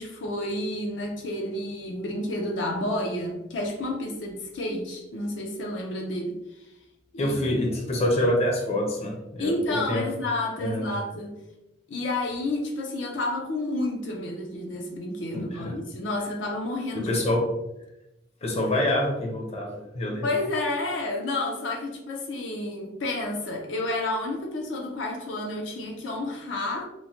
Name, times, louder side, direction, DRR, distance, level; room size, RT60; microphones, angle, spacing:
voice 1, 0.0-6.7 7.1-7.3 7.9-8.0 9.4-11.4 11.9-17.1 20.2-26.9, left 2 dB, 80° left, 0.5 m, -30 dB
voice 2, 7.2-10.1 10.6-10.9 15.3-15.8 16.9-17.5 18.4-20.3, left 1 dB, 35° left, 0.6 m, -26 dB
3.0 x 2.1 x 2.7 m
head